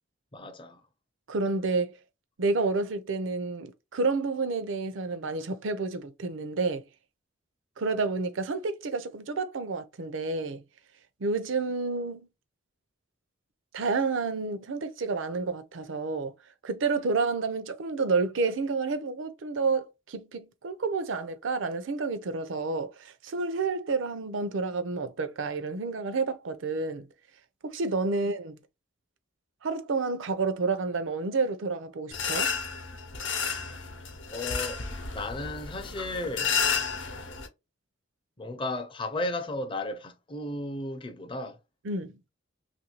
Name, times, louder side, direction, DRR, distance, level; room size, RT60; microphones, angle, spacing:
voice 1, 0.3-0.8 34.3-34.8 35.1-36.6 38.4-41.6, left 2 dB, 25° left, 0.5 m, -34 dB
voice 2, 1.3-1.9 2.4-6.8 7.8-10.6 11.2-12.3 13.7-16.3 16.6-27.1 27.6-28.6 29.6-32.5 41.8-42.2, right 4 dB, 80° right, 0.5 m, -30 dB
sound 1, 32.1-37.5, left 6 dB, 70° left, 0.8 m, -31 dB
3.0 x 2.6 x 3.0 m
head